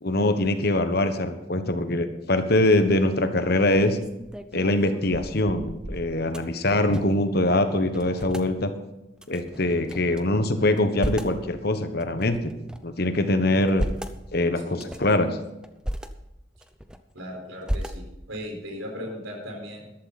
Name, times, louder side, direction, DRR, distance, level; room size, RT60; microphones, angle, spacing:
voice 1, 0.0-4.0 4.5-8.7 9.3-12.4 12.8-13.8 14.3-15.3, left 1 dB, 50° left, 9 dB, 1.2 m, -23 dB
sound 1, 3.8-7.3 7.5-7.6 7.9-8.5 9.2-10.2 10.7-11.4 12.0-12.9 13.5-14.2 14.7-15.2 15.6-16.1 16.6-17.2 17.6-18.4, equal, 5° right, 0.6 m, -34 dB
voice 2, 17.1-19.9, equal, 85° right, 1 dB, 4.7 m, -37 dB
14.0 x 12.0 x 4.2 m, 0.98 s
head